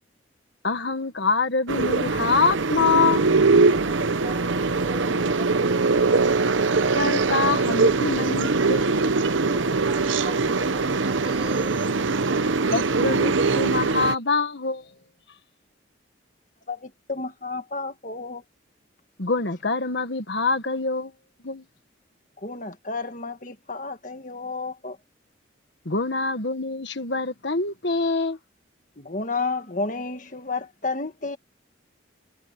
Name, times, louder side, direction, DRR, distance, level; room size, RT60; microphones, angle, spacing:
voice 1, 0.6-3.2 6.9-9.1 12.7-14.9 19.2-21.1 21.4-21.6 25.8-28.4, left 4 dB, 65° left, 1.4 m, -25 dB
sound 1, 1.7-14.1, right 3 dB, 80° right, 0.9 m, -22 dB
voice 2, 3.8-6.1 9.8-11.8 12.4-12.5, right 2 dB, 30° right, 1.6 m, -39 dB
voice 3, 16.7-18.4 22.4-25.0 29.0-31.4, left 3 dB, 40° left, 1.8 m, -31 dB
head